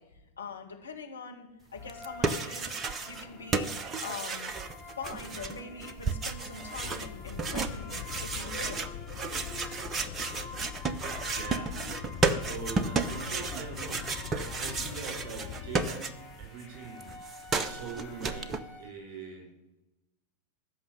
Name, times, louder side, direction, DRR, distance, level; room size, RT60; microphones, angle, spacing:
voice 1, 0.0-2.8 3.1-3.7 4.0-4.5 4.8-8.0 8.2-8.9 12.1-12.3, left 5 dB, 75° left, 1 dB, 2.1 m, -43 dB
sound 1, 1.7-18.9, left 3 dB, 15° left, 3.7 m, -48 dB
sound 2, 1.9-3.3 3.5-16.5 16.7-18.6, right 4 dB, 20° right, 0.9 m, -33 dB
sound 3, 6.7-15.9, left 11 dB, 40° left, 0.7 m, -43 dB
voice 2, 11.3-11.7 12.2-16.1 16.4-17.1 17.6-19.5, right 5 dB, 40° right, 2 dB, 6.0 m, -42 dB
14.5 x 6.5 x 9.7 m, 0.96 s
figure-of-eight pair, 90°, 0 cm